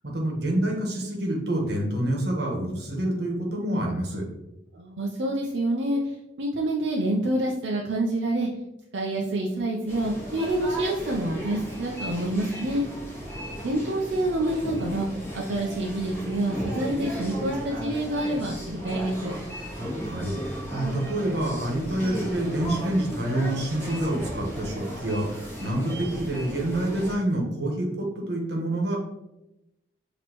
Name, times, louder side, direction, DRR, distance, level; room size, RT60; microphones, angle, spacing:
voice 1, 0.0-4.2 19.8-29.0, right 1 dB, 60° right, -1 dB, 1.2 m, -27 dB
voice 2, 4.7-8.5 8.9-12.9 13.6-15.1 15.3-19.3, right 1 dB, 85° right, -2 dB, 0.6 m, -27 dB
sound 1, 9.9-27.1, equal, 10° left, 1.4 m, -35 dB
6.1 x 2.9 x 3.0 m, 0.91 s
head